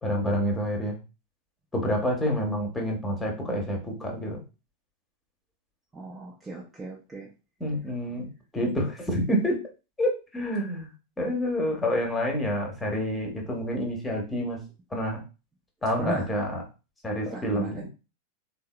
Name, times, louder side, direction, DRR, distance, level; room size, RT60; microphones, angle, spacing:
voice 1, 0.0-1.0 1.7-4.4 7.6-8.3 8.5-9.6 10.0-10.9 11.2-14.6 14.9-15.2 15.8-16.6 17.0-17.9, equal, 10° left, 1 dB, 1.1 m, -28 dB
voice 2, 5.9-7.3 16.0-16.3 17.3-17.9, right 2 dB, 15° right, -3 dB, 0.7 m, -37 dB
3.7 x 2.7 x 2.2 m, 0.31 s
figure-of-eight pair, 90°, 0 cm